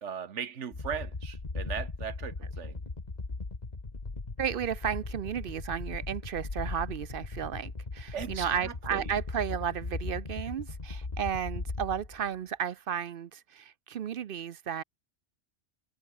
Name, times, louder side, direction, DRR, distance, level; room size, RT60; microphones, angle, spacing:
voice 1, 0.0-2.8 8.1-9.1, right 7 dB, 75° right, 1.5 m, -38 dB
sound 1, 0.7-12.3, left 3 dB, 35° left, 2.0 m, -38 dB
voice 2, 4.4-14.8, right 8 dB, 55° right, 0.7 m, -33 dB
omnidirectional pair, 1.2 m